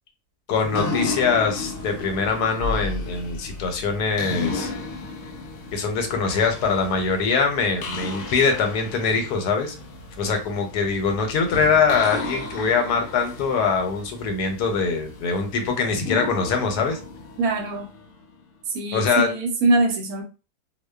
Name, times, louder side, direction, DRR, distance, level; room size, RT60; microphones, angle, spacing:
voice 1, 0.5-4.7 5.7-9.7 10.2-17.0 18.9-19.3, left 5 dB, 85° left, 4 dB, 1.2 m, -23 dB
sound 1, 0.5-18.3, left 3 dB, 70° left, 0.7 m, -34 dB
voice 2, 17.4-17.9 18.7-20.2, right 2 dB, 75° right, 4 dB, 1.0 m, -23 dB
2.6 x 2.1 x 2.2 m, 0.32 s
omnidirectional pair, 1.7 m